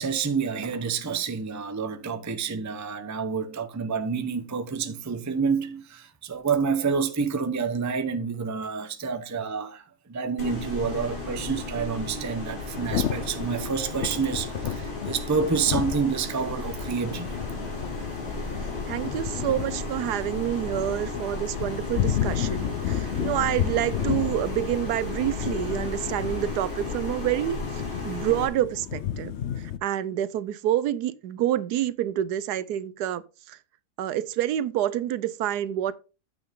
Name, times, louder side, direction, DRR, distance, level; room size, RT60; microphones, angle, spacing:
voice 1, 0.0-9.8 10.1-17.4, right 5 dB, 20° right, 0.4 m, -28 dB
sound 1, 10.4-28.5, left 2 dB, 30° left, 4.2 m, -35 dB
Thunder / Rain, 12.7-29.8, left 10 dB, 65° left, 0.7 m, -32 dB
voice 2, 18.9-33.6 34.0-36.0, right 12 dB, 80° right, 1.2 m, -28 dB
8.8 x 6.9 x 3.7 m
omnidirectional pair, 1.7 m